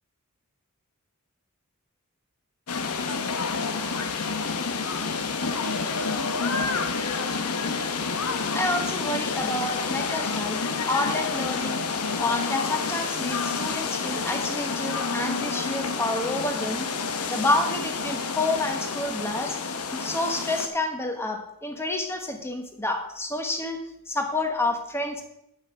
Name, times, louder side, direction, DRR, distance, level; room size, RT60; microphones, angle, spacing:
sound 1, 2.7-20.7, left 4 dB, 90° left, 1.0 m, -29 dB
voice 1, 8.5-10.6 10.9-19.6 19.9-23.8 24.1-25.2, left 2 dB, 10° left, 4 dB, 1.2 m, -29 dB
9.6 x 8.0 x 4.9 m, 0.79 s
head